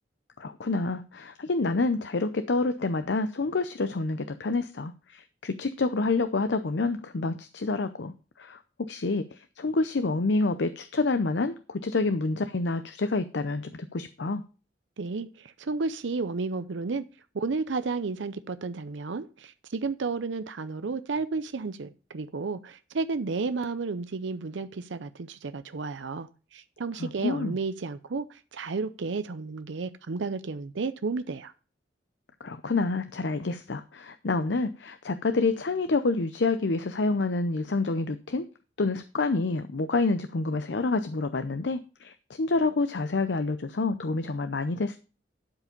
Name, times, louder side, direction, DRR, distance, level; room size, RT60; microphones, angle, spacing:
voice 1, 0.4-14.4 27.0-27.5 32.4-38.4 38.8-45.0, left 3 dB, 70° left, 0.6 m, -28 dB
voice 2, 15.0-17.1 17.3-31.5, right 4 dB, 90° right, 0.6 m, -32 dB
11.5 x 5.0 x 5.2 m
head